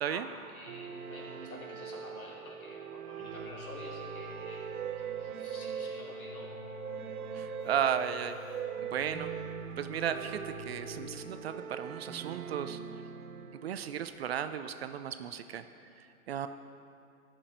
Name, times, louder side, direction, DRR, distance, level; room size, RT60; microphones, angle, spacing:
voice 1, 0.1-6.5 7.3-7.4, left 2 dB, 80° left, -3 dB, 2.3 m, -49 dB
sound 1, 0.7-14.1, right 7 dB, 90° right, 0.7 m, -41 dB
Keyboard (musical), 3.2-11.5, left 4 dB, 25° left, 2.8 m, -50 dB
voice 2, 7.3-8.4 8.8-9.3 9.8-12.8 13.6-15.6 16.3-16.5, right 9 dB, 50° right, 10 dB, 0.5 m, -34 dB
sound 2, 9.1-13.4, right 7 dB, 55° left, 2.7 m, -48 dB
13.5 x 6.1 x 5.1 m, 2.6 s
hypercardioid pair, 140°, 42 cm